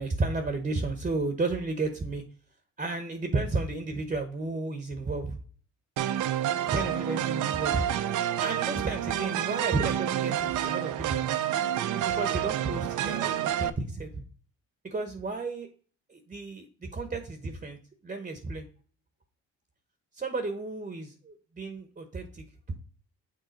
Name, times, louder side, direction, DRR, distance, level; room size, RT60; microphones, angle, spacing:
voice 1, 0.0-2.2 2.8-5.4 6.6-8.0 8.4-11.2 11.9-14.2 14.8-15.7 16.1-17.8 18.0-18.7 20.1-22.7, right 3 dB, 25° right, 7 dB, 1.0 m, -32 dB
sound 1, 6.0-13.7, right 11 dB, 80° right, 0.6 m, -29 dB
6.7 x 3.7 x 5.1 m, 0.42 s
cardioid pair, 90°, 30 cm